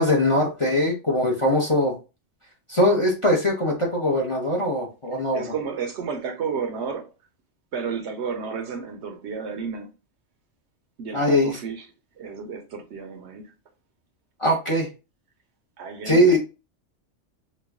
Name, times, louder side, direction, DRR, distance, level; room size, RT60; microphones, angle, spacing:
voice 1, 0.0-1.9 2.7-5.5 11.1-11.6 14.4-14.9 16.1-16.4, left 1 dB, 30° left, 0.6 m, -21 dB
voice 2, 5.3-7.1 7.7-9.9 11.0-11.9 12.2-13.5 15.8-16.4, right 6 dB, 65° right, 0.9 m, -32 dB
3.1 x 2.2 x 3.5 m
omnidirectional pair, 1.3 m